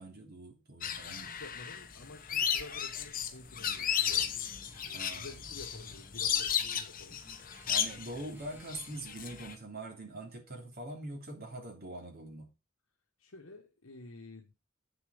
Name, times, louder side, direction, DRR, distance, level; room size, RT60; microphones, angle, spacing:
voice 1, 0.0-1.3 4.9-5.4 7.7-12.5, right 1 dB, 45° right, 3.2 m, -43 dB
sound 1, 0.8-9.5, left 8 dB, 40° left, 1.1 m, -34 dB
voice 2, 1.1-4.3 4.8-7.2 13.2-14.5, left 2 dB, 75° left, 1.3 m, -50 dB
Guitar, 3.2-9.0, left 1 dB, 10° right, 2.2 m, -57 dB
8.1 x 7.0 x 5.1 m
head